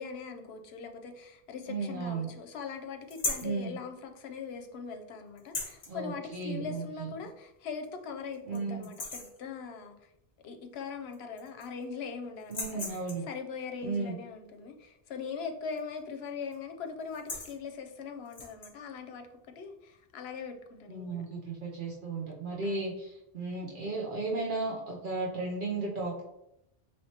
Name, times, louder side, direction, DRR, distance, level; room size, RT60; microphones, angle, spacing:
voice 1, 0.0-10.1 10.4-19.3 19.6-21.4 22.6-22.9, left 5 dB, 80° left, 6 dB, 0.8 m, -41 dB
voice 2, 1.7-2.3 3.4-3.8 5.9-7.1 8.5-8.9 12.5-13.3 13.8-14.2 20.9-26.2, right 3 dB, 55° right, -3 dB, 0.8 m, -35 dB
sound 1, 3.1-3.6 5.4-5.9 7.3-7.4 7.8-7.9 8.3-8.6 8.8-9.4 10.8-10.9 11.1-11.8 12.4-13.3 15.7-16.0 16.3-16.6 17.0-17.6 18.3-18.7, left 2 dB, 40° left, 0.9 m, -37 dB
4.2 x 3.1 x 2.8 m, 0.81 s
omnidirectional pair, 1.1 m